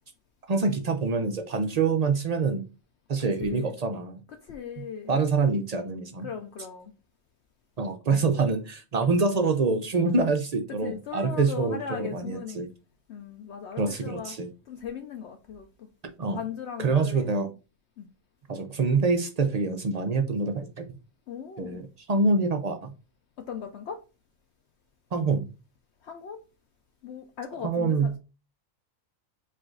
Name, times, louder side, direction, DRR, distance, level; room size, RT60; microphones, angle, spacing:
voice 1, 0.5-2.6 3.1-4.2 4.8-6.3 7.8-12.7 13.8-14.5 16.2-16.4 16.8-17.5 18.5-20.8 21.6-21.8 22.1-22.9 25.1-25.5 27.6-28.2, right 4 dB, 65° right, 0.4 m, -26 dB
voice 2, 3.2-3.8 4.3-5.2 6.2-6.9 9.0-9.1 10.8-12.6 13.1-14.4 14.7-15.9 16.2-17.3 18.0-18.1 21.3-21.8 23.4-24.0 26.0-26.4 27.0-28.2, left 7 dB, 65° left, 0.8 m, -38 dB
4.9 x 2.5 x 3.8 m
omnidirectional pair, 1.4 m